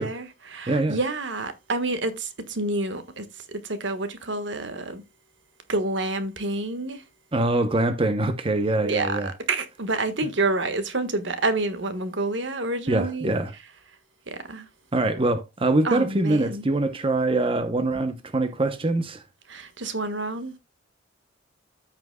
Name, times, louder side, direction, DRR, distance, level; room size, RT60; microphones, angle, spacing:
voice 1, 0.0-5.0 5.7-7.1 8.8-13.3 14.3-14.7 15.8-16.7 19.5-20.6, right 2 dB, 70° right, 1.4 m, -28 dB
voice 2, 0.7-1.0 7.3-9.3 12.9-13.5 14.9-19.2, right 2 dB, 30° right, 0.7 m, -24 dB
14.0 x 5.9 x 2.2 m
head